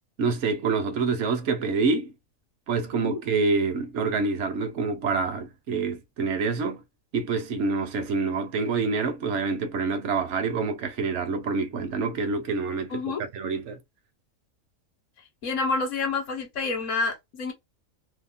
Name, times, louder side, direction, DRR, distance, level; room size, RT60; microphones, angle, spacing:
voice 1, 0.2-2.1 2.7-6.8 7.1-13.8, right 4 dB, 65° right, 0.9 m, -27 dB
voice 2, 12.9-13.2 15.4-17.5, left 4 dB, 65° left, 1.1 m, -28 dB
2.8 x 2.0 x 2.4 m
omnidirectional pair, 1.4 m